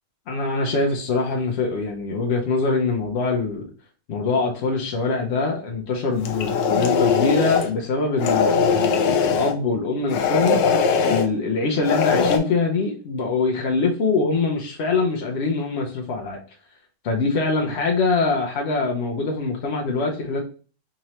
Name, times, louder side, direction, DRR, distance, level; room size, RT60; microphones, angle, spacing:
voice 1, 0.3-3.7 4.1-10.6 11.0-16.4 17.0-20.4, left 3 dB, 70° left, 0 dB, 0.6 m, -23 dB
sound 1, 6.2-7.7 8.2-9.5 10.1-11.3 11.8-12.4, left 6 dB, 85° left, 1.3 m, -20 dB
3.6 x 3.1 x 2.9 m, 0.38 s
omnidirectional pair, 1.9 m